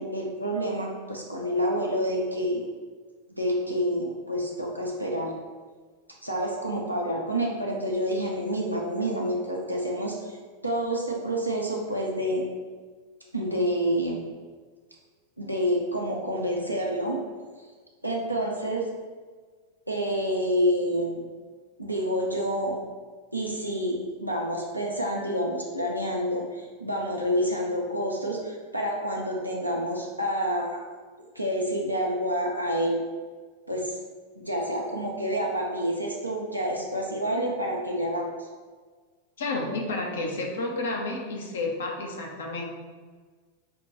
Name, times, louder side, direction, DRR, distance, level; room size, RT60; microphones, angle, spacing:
voice 1, 0.0-2.6 3.3-5.3 6.2-10.4 10.6-12.4 13.3-14.2 15.4-17.2 18.0-18.9 19.9-21.2 21.8-22.8 23.3-30.8 31.4-33.0 33.7-34.0 34.4-38.5, equal, 90° right, -2 dB, 0.5 m, -28 dB
voice 2, 39.4-42.7, left 2 dB, 60° left, 1 dB, 0.7 m, -31 dB
5.1 x 2.2 x 2.9 m, 1.5 s
figure-of-eight pair, 90°, 0 cm